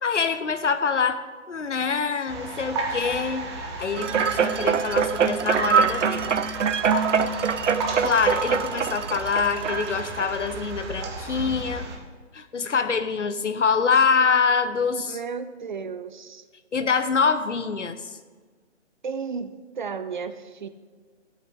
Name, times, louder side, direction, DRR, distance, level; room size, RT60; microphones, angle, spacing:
voice 1, 0.0-6.3 8.0-11.9 12.3-15.2 16.7-18.2, left 5 dB, 75° left, 11 dB, 0.9 m, -25 dB
sound 1, 2.3-12.0, right 2 dB, 20° right, 1.1 m, -33 dB
sound 2, 4.0-10.5 11.0-11.1, right 7 dB, 80° right, 0.6 m, -24 dB
voice 2, 15.1-16.4 19.0-20.7, right 5 dB, 40° right, 11 dB, 0.6 m, -33 dB
14.5 x 8.5 x 3.7 m, 1.5 s
figure-of-eight pair, 140°, 36 cm